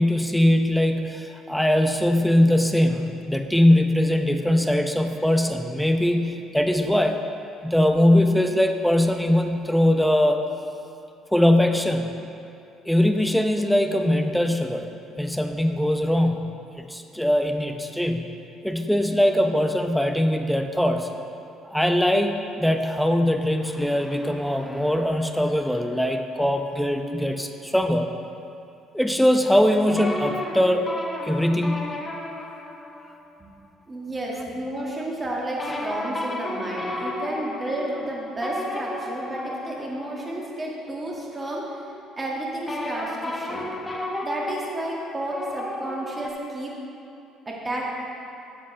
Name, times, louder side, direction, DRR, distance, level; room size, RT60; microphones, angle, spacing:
voice 1, 0.0-7.2 7.6-10.4 11.3-12.2 12.9-18.3 18.6-21.1 21.7-28.1 28.9-30.9 31.2-32.0, left 1 dB, ahead, 5 dB, 0.7 m, -21 dB
sound 1, 29.9-33.3 35.6-41.3 42.7-46.3, left 1 dB, 20° left, 1.2 m, -33 dB
voice 2, 33.9-41.7 42.2-43.7 44.2-46.7 47.5-47.9, right 1 dB, 30° right, -3 dB, 2.0 m, -31 dB
11.5 x 7.4 x 3.4 m, 2.7 s
hypercardioid pair, 55°, 0 cm